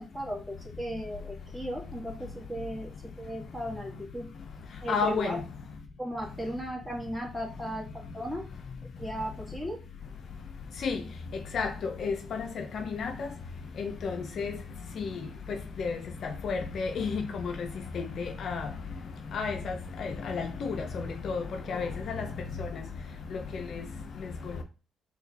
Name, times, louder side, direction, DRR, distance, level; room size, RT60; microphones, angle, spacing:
voice 1, 0.0-4.3 4.8-5.4 6.0-8.5 9.0-9.8, equal, 5° right, 1.7 m, -36 dB
voice 2, 4.9-5.3 10.8-11.0 11.5-11.7 12.0-12.5 12.7-13.1 13.8-14.5 15.0-15.1 15.8-16.0 16.4-17.2 18.2-18.7 19.3-19.7 20.0-21.4 21.7-21.9 22.2-22.3 22.6-22.7, left 5 dB, 60° left, 0.5 m, -31 dB
4.4 x 2.3 x 3.3 m
supercardioid pair, 60°, 0 cm